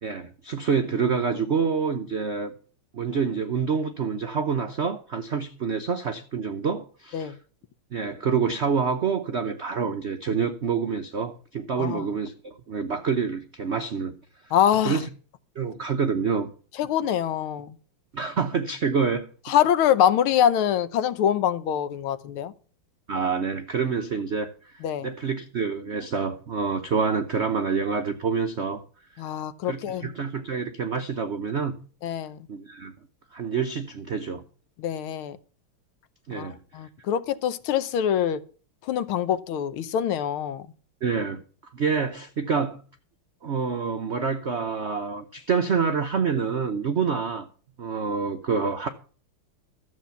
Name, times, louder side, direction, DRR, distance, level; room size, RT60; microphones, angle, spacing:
voice 1, 0.0-2.5 2.9-7.4 7.9-14.1 14.8-15.1 15.6-16.5 18.1-19.2 23.1-24.7 25.0-28.8 29.6-31.8 32.5-32.9 33.3-34.4 36.3-36.6 41.0-41.4 41.7-42.8 43.4-47.5 47.8-48.9, right 5 dB, 70° right, 0.6 m, -27 dB
voice 2, 14.5-15.0 16.8-17.7 19.5-22.5 24.8-25.1 29.2-30.1 32.0-32.4 34.8-35.4 36.3-38.4 38.9-40.7, left 10 dB, 80° left, 1.7 m, -24 dB
13.0 x 7.5 x 6.9 m
omnidirectional pair, 2.4 m